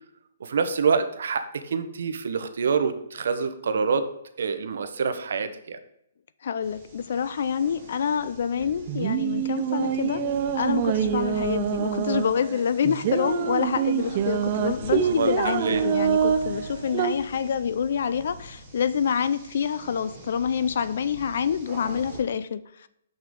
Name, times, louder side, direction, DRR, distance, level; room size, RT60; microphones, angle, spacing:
voice 1, 0.4-4.1 4.4-5.8 15.0-15.8, right 5 dB, 60° right, 9 dB, 0.8 m, -26 dB
voice 2, 6.4-10.2 10.5-22.9, left 7 dB, 50° left, 15 dB, 0.4 m, -27 dB
sound 1, 6.6-22.2, right 1 dB, 10° right, 1.7 m, -44 dB
sound 2, 8.6-17.1, right 9 dB, 30° right, 0.4 m, -26 dB
6.4 x 5.7 x 3.6 m, 0.77 s
hypercardioid pair, 170°, 0 cm